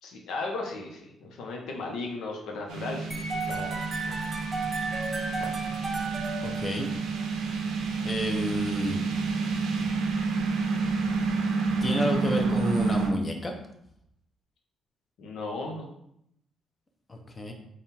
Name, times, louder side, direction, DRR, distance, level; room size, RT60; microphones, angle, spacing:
voice 1, 0.0-4.3 5.4-5.5 15.2-15.9, left 3 dB, 80° left, 1 dB, 0.8 m, -36 dB
sound 1, 2.7-13.1, right 4 dB, 90° right, 0.5 m, -29 dB
sound 2, 3.1-7.2, right 3 dB, 25° right, 0.7 m, -34 dB
voice 2, 6.4-6.9 8.0-9.0 11.8-13.5 17.1-17.5, left 1 dB, 25° left, 3 dB, 0.7 m, -30 dB
3.6 x 2.4 x 4.2 m, 0.76 s
cardioid pair, 90°, 0 cm